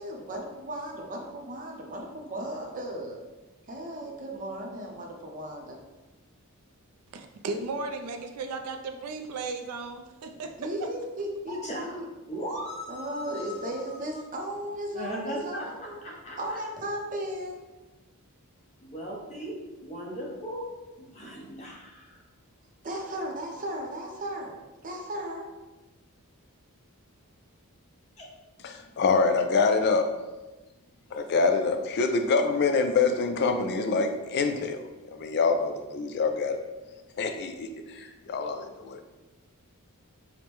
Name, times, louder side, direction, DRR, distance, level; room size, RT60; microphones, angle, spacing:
voice 1, 0.0-3.2 3.7-5.8 10.3-12.0 12.9-16.0 16.4-17.6 22.8-24.6 24.8-25.5, right 1 dB, 35° right, 0 dB, 0.6 m, -36 dB
voice 2, 7.1-10.5, right 3 dB, 85° right, 6 dB, 0.4 m, -35 dB
voice 3, 11.5-12.0 12.3-13.7 14.9-16.6 18.8-19.5 19.8-20.7 21.0-22.2 28.2-28.3, equal, 30° left, -3 dB, 0.8 m, -38 dB
voice 4, 28.6-30.1 31.1-34.8 35.1-36.6 37.2-39.0, left 4 dB, 50° left, 6 dB, 0.4 m, -25 dB
5.1 x 2.1 x 3.0 m, 1.1 s
head